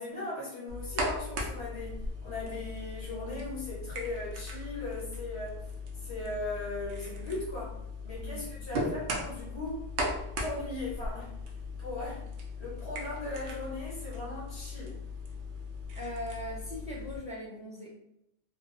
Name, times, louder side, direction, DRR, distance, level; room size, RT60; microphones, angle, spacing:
voice 1, 0.0-7.8 8.0-9.9 10.4-11.4 11.8-12.3 12.6-15.0, left 2 dB, 75° left, -6 dB, 1.5 m, -38 dB
sound 1, 0.7-17.2, left 1 dB, 90° right, 0.9 m, -38 dB
voice 2, 16.0-18.0, equal, 10° right, -6 dB, 0.6 m, -40 dB
3.0 x 2.1 x 2.6 m, 0.79 s
omnidirectional pair, 1.1 m